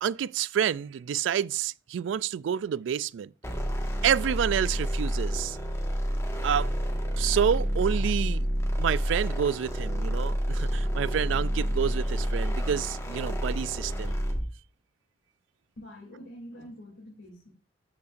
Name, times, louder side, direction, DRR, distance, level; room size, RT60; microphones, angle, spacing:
voice 1, 0.0-3.3 4.0-5.6 6.4-8.5 8.8-14.2, right 8 dB, 85° right, 0.3 m, -29 dB
sound 1, 3.4-14.5, equal, 15° left, 1.5 m, -29 dB
voice 2, 15.8-17.5, equal, 90° left, 2.9 m, -45 dB
13.0 x 5.6 x 2.6 m
head